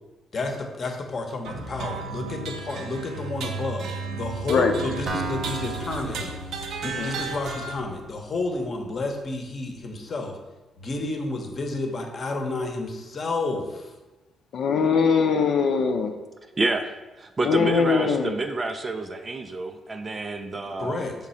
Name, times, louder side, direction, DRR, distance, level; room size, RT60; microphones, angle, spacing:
voice 1, 0.3-6.4 6.8-10.4 10.8-13.9 20.8-21.1, left 3 dB, 35° left, 3 dB, 1.0 m, -31 dB
sound 1, 1.4-7.8, right 4 dB, 75° right, 0.8 m, -34 dB
Acoustic guitar, 5.1-8.9, right 2 dB, 50° right, 1.1 m, -36 dB
voice 2, 14.5-16.1 17.4-18.3, left 5 dB, 60° left, 4 dB, 0.7 m, -21 dB
voice 3, 16.6-16.9 17.2-21.1, right 3 dB, 25° right, 7 dB, 0.4 m, -28 dB
6.1 x 3.7 x 5.5 m, 1.1 s
cardioid pair, 135°, 0 cm